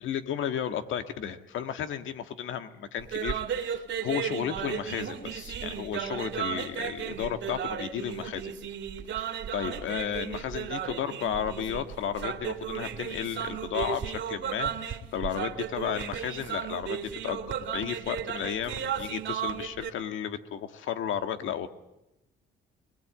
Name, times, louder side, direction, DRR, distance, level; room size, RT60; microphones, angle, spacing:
voice 1, 0.0-8.7 9.5-21.7, left 9 dB, 80° left, 8 dB, 1.7 m, -33 dB
sound 1, 3.0-19.9, right 8 dB, 70° right, 2.7 m, -35 dB
22.0 x 21.0 x 8.9 m, 0.92 s
cardioid pair, 90°, 20 cm